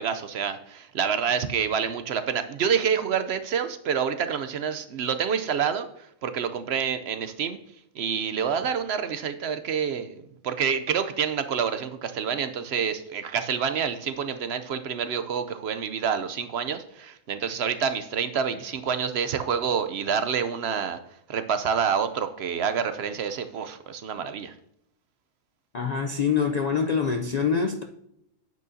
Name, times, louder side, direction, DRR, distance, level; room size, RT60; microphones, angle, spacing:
voice 1, 0.0-5.9 6.2-7.6 8.0-10.1 10.4-21.0 21.3-24.5, right 7 dB, 65° right, 0.8 m, -27 dB
voice 2, 25.7-27.8, left 6 dB, 55° left, 0.4 m, -25 dB
9.1 x 8.0 x 2.7 m
omnidirectional pair, 1.3 m